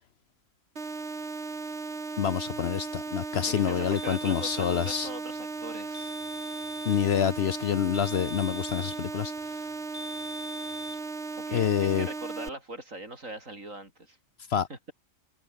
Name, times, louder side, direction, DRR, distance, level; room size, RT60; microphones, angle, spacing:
sound 1, 0.8-12.5, right 3 dB, 50° right, 2.7 m, -36 dB
voice 1, 2.2-5.1 6.9-9.3 11.5-12.1 14.5-14.7, left 9 dB, 55° left, 0.8 m, -27 dB
voice 2, 3.5-6.2 11.4-14.2 14.7-14.9, right 2 dB, 70° right, 7.0 m, -41 dB
sound 2, 4.0-5.1 5.9-7.1 7.9-9.1 9.9-11.0, left 1 dB, 10° left, 1.0 m, -42 dB
omnidirectional pair, 1.4 m